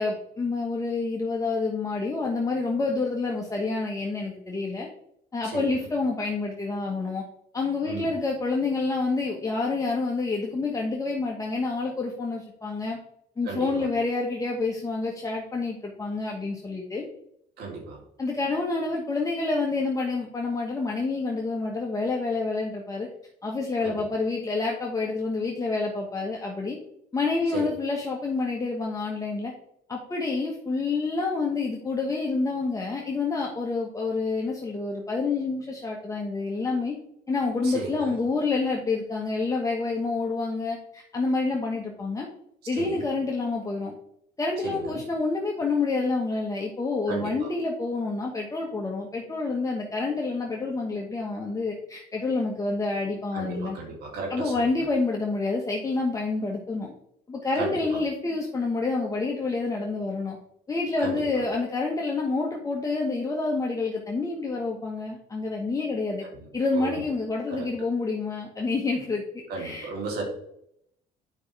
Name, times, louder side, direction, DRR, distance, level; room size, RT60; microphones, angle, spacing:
voice 1, 0.0-4.9 5.3-7.2 7.5-13.0 13.4-17.1 18.2-23.1 23.4-26.8 27.1-29.5 29.9-36.9 37.3-42.3 42.7-43.9 44.4-53.8 54.3-56.9 57.3-60.4 60.7-66.2 66.5-69.9, left 3 dB, 20° left, -1 dB, 1.3 m, -28 dB
voice 2, 5.4-5.9 7.8-8.1 13.4-13.9 17.6-18.0 23.8-24.0 27.5-27.7 37.6-38.1 42.7-43.0 44.6-45.0 47.1-47.5 53.3-54.8 57.5-58.0 61.0-61.4 66.2-66.5 66.7-67.0 67.5-67.7 69.5-70.2, right 3 dB, 70° right, -1 dB, 3.3 m, -35 dB
9.6 x 5.4 x 3.4 m, 0.72 s
cardioid pair, 110°, 17 cm